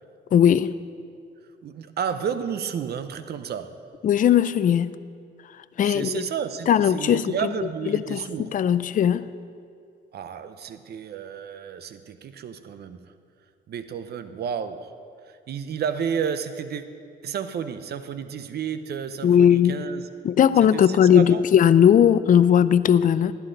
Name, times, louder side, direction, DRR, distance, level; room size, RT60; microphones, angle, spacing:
voice 1, 0.3-0.7 4.0-4.9 5.8-6.2 6.7-7.3 7.9-8.2 8.5-9.3 19.2-19.9 20.2-23.3, left 9 dB, 45° left, 15 dB, 0.4 m, -18 dB
voice 2, 1.6-3.8 5.8-8.5 10.1-13.0 13.7-14.9 15.3-16.8 17.2-20.1 20.7-21.4, right 7 dB, 55° right, 11 dB, 0.6 m, -31 dB
11.5 x 11.0 x 3.9 m, 2.3 s
cardioid pair, 90°, 20 cm